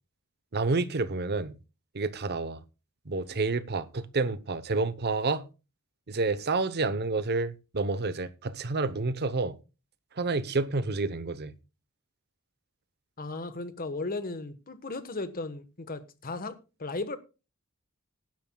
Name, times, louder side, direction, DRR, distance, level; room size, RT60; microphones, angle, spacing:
voice 1, 0.5-1.5 1.9-2.6 3.1-5.5 6.1-9.6 10.2-11.5, right 3 dB, 50° right, 0.8 m, -29 dB
voice 2, 13.2-17.2, left 3 dB, 40° left, 1.3 m, -36 dB
19.0 x 10.5 x 2.3 m
head